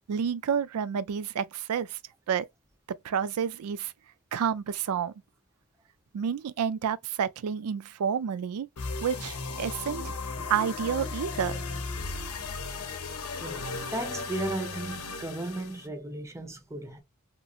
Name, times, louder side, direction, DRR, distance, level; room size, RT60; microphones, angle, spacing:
voice 1, 0.1-2.0 2.3-2.5 2.9-3.9 4.3-5.1 6.1-8.7 9.0-10.1 10.5-11.6, right 7 dB, 85° right, 0.4 m, -29 dB
sound 1, 8.8-15.9, left 4 dB, 80° left, 0.7 m, -36 dB
voice 2, 13.4-17.0, right 1 dB, 15° right, 0.6 m, -35 dB
2.9 x 2.5 x 2.4 m
head